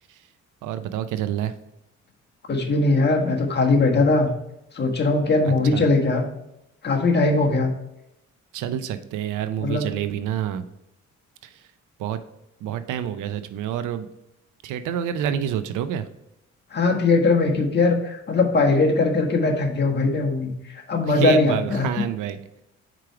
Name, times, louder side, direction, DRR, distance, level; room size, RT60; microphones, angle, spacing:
voice 1, 0.6-1.5 5.4-5.8 8.5-10.6 12.0-12.2 12.6-14.1 14.6-16.1 21.1-22.4, right 9 dB, 85° right, 12 dB, 0.6 m, -27 dB
voice 2, 2.5-4.3 4.7-6.2 6.8-7.7 9.6-9.8 16.7-22.1, left 3 dB, 35° left, 1 dB, 1.3 m, -20 dB
5.0 x 4.6 x 4.6 m, 0.86 s
cardioid pair, 90°, 30 cm